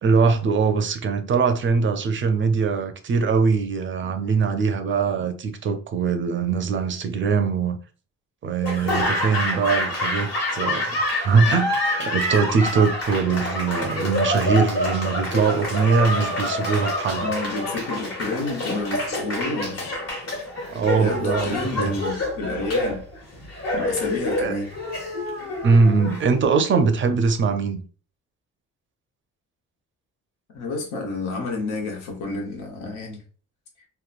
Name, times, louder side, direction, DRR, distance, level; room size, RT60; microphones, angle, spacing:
voice 1, 0.0-7.8 8.4-17.3 20.7-22.0 24.4-24.6 25.6-27.8, right 5 dB, 40° right, 0.4 m, -22 dB
Laughter / Applause, 8.6-26.7, left 1 dB, 55° left, 1.3 m, -27 dB
voice 2, 17.2-20.0 21.0-23.0 23.7-24.7 30.5-33.2, left 2 dB, 90° left, 1.0 m, -29 dB
3.0 x 2.1 x 2.4 m
cardioid pair, 90°, 30 cm